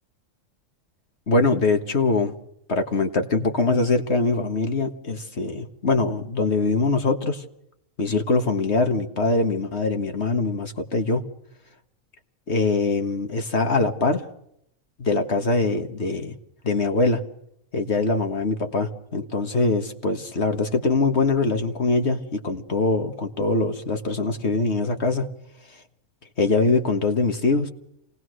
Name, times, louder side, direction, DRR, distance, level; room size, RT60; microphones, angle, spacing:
voice 1, 1.3-2.3 2.7-7.4 8.0-11.2 12.5-14.2 15.0-16.3 16.6-17.2 17.7-25.3 25.7-25.8 26.4-27.7, left 3 dB, 55° left, 6 dB, 1.8 m, -23 dB
28.0 x 18.5 x 6.3 m, 0.75 s
omnidirectional pair, 1.4 m